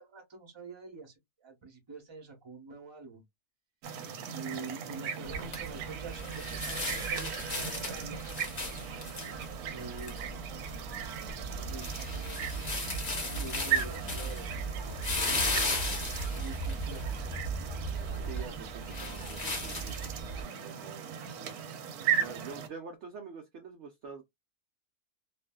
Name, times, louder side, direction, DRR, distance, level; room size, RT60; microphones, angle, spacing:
voice 1, 0.0-3.2 4.3-8.2 9.6-10.8 11.4-14.5 15.1-17.2, right 3 dB, 25° right, 0.8 m, -46 dB
sound 1, 3.8-22.7, right 8 dB, 85° right, 1.1 m, -38 dB
sound 2, 5.2-20.4, equal, 35° left, 0.8 m, -36 dB
voice 2, 18.2-20.0 20.6-21.1 22.1-24.2, right 5 dB, 65° right, 0.7 m, -46 dB
2.6 x 2.4 x 2.2 m
omnidirectional pair, 1.6 m